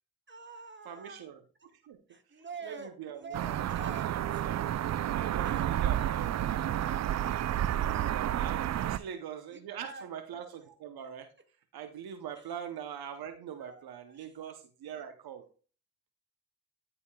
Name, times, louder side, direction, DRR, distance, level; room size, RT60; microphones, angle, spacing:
voice 1, 0.3-1.3 1.6-1.7 2.1-4.4 5.4-6.5 8.7-9.1 9.5-10.1 12.4-12.5 13.6-14.3, right 4 dB, 30° right, 6 dB, 1.6 m, -47 dB
voice 2, 0.8-1.4 1.8-2.0 2.6-3.5 5.1-7.5 8.0-11.3 11.7-15.4, right 8 dB, 75° right, 9 dB, 0.8 m, -43 dB
sound 1, 3.3-9.0, right 11 dB, 45° right, 0.4 m, -30 dB
11.5 x 5.0 x 2.2 m, 0.38 s
supercardioid pair, 45°, 38 cm